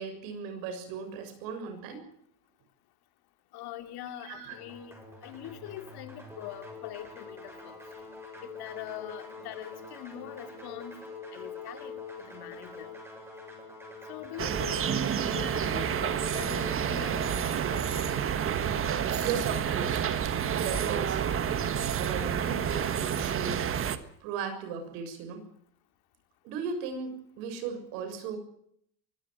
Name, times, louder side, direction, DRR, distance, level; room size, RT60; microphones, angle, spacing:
voice 1, 0.0-2.0 4.2-4.6 19.2-20.1 20.5-21.4 21.9-23.8 24.2-25.4 26.4-28.4, right 6 dB, 75° right, 8 dB, 7.0 m, -37 dB
voice 2, 3.5-5.0 5.2-7.8 8.4-11.0 11.3-12.9 14.1-14.9 15.3-18.1, left 11 dB, 50° left, 8 dB, 2.7 m, -43 dB
sound 1, 4.5-18.2, left 4 dB, 5° right, 6.8 m, -45 dB
sound 2, 14.4-24.0, right 8 dB, 25° right, 1.5 m, -29 dB
sound 3, 19.1-19.4 19.9-20.6 21.1-23.7 24.2-24.4 24.9-25.0, right 12 dB, 55° right, 3.0 m, -49 dB
24.0 x 16.0 x 7.9 m, 0.70 s
cardioid pair, 155°, 48 cm